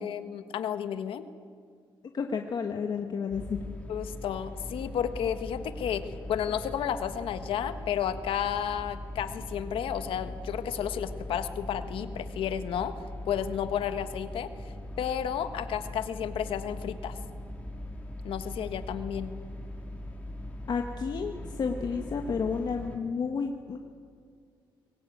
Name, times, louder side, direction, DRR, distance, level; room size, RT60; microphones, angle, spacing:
voice 1, 0.0-1.2 3.9-12.9 13.2-14.5 15.0-17.2 18.2-19.4, left 9 dB, 85° left, 10 dB, 1.5 m, -32 dB
voice 2, 2.1-3.6 20.7-23.8, left 5 dB, 50° left, 3 dB, 1.6 m, -31 dB
sound 1, 3.3-23.0, left 1 dB, 15° left, 3.4 m, -40 dB
24.0 x 21.0 x 9.4 m, 2.1 s
cardioid pair, 125°, 9 cm